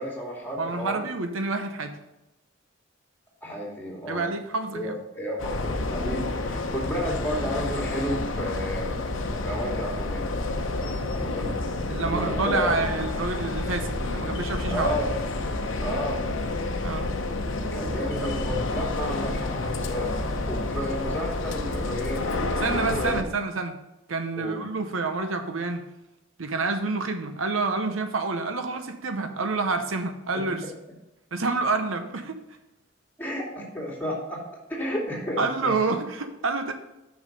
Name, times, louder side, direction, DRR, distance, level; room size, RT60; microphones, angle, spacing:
voice 1, 0.0-1.0 3.4-4.3 4.7-8.9 9.4-10.2 11.1-11.5 12.0-12.8 14.7-15.2 15.8-16.2 17.7-20.1 20.5-22.3 22.6-23.3 24.4-24.6 33.2-34.4 34.7-35.7, equal, 10° left, -5 dB, 2.5 m, -32 dB
voice 2, 0.6-2.0 4.1-5.0 11.9-14.9 16.8-17.1 22.5-23.8 24.1-25.8 26.4-30.6 31.3-32.4 35.4-36.7, right 3 dB, 75° right, 7 dB, 0.8 m, -28 dB
sound 1, 5.4-23.2, left 2 dB, 70° left, 0.8 m, -29 dB
6.3 x 6.1 x 5.3 m, 0.93 s
head